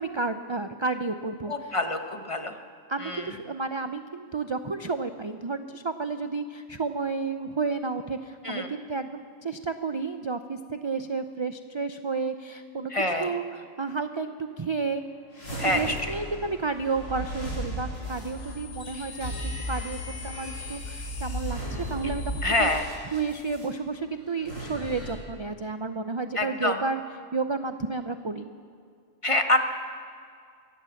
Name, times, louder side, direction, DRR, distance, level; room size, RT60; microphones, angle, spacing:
voice 1, 0.0-1.8 2.9-12.9 13.2-14.3 14.6-15.0 15.6-20.0 20.2-22.7 23.1-27.0 27.3-28.5, right 4 dB, 35° right, 8 dB, 0.5 m, -31 dB
voice 2, 1.5-2.6 3.0-3.3 8.4-8.7 12.9-13.3 15.6-16.1 22.4-22.9 26.3-26.8 29.2-29.6, left 2 dB, 25° left, 5 dB, 1.3 m, -26 dB
sound 1, 15.3-23.6 24.3-25.1, equal, 75° left, 7.6 m, -36 dB
sound 2, 19.2-22.9, equal, 60° right, 5.3 m, -39 dB
23.0 x 16.0 x 7.2 m, 2.2 s
omnidirectional pair, 1.3 m